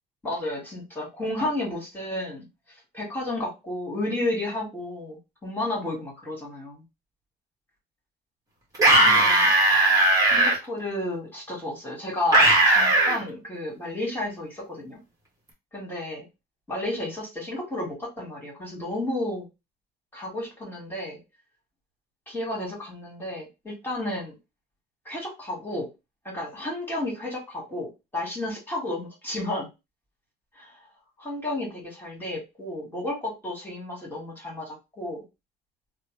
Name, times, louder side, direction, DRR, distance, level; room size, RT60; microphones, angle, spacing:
voice 1, 0.2-2.4 2.9-6.8 9.0-9.5 10.3-15.0 15.7-16.3 16.7-19.5 20.1-21.2 22.3-24.4 25.1-25.9 26.2-29.7 30.6-30.8 31.2-35.2, left 1 dB, 10° left, -3 dB, 1.8 m, -32 dB
sound 1, 8.7-10.5 12.3-13.2, right 2 dB, 20° right, 1.3 m, -18 dB
3.0 x 2.0 x 3.2 m, 0.24 s
cardioid pair, 110°, 17 cm